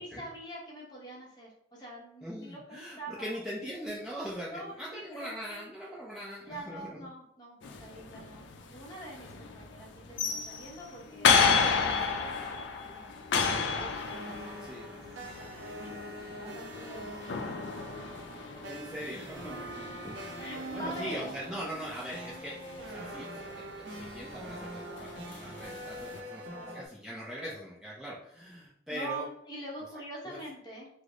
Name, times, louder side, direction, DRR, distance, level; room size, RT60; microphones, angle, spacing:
voice 1, 0.0-3.4 4.4-5.7 6.5-8.4 8.7-14.6 14.8-17.8 20.4-21.4 26.4-26.8 28.9-30.9, right 1 dB, 25° left, -3 dB, 0.9 m, -45 dB
voice 2, 2.2-7.1 14.6-14.9 18.7-19.9 20.7-29.3 30.2-30.4, equal, 5° right, -7 dB, 0.4 m, -41 dB
sound 1, 7.6-26.2, left 5 dB, 90° left, 0.4 m, -33 dB
sound 2, 14.0-26.9, right 1 dB, 85° right, 0.6 m, -43 dB
3.2 x 2.0 x 3.6 m, 0.77 s
head